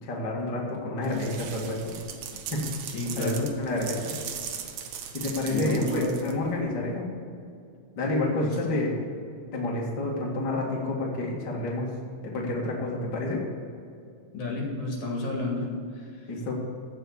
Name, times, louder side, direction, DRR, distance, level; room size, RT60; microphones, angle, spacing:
voice 1, 0.0-2.0 2.5-2.6 3.2-3.3 3.6-4.2 5.1-7.1 8.0-8.9 9.5-11.9 12.2-13.4 16.3-16.5, left 2 dB, 35° left, -3 dB, 2.5 m, -29 dB
sound 1, 1.0-6.6, right 8 dB, 70° right, 2.3 m, -39 dB
voice 2, 2.9-3.5 5.4-6.3 8.4-8.7 14.3-16.3, left 2 dB, 65° left, -1 dB, 3.5 m, -31 dB
15.5 x 5.7 x 8.1 m, 2.3 s
omnidirectional pair, 3.6 m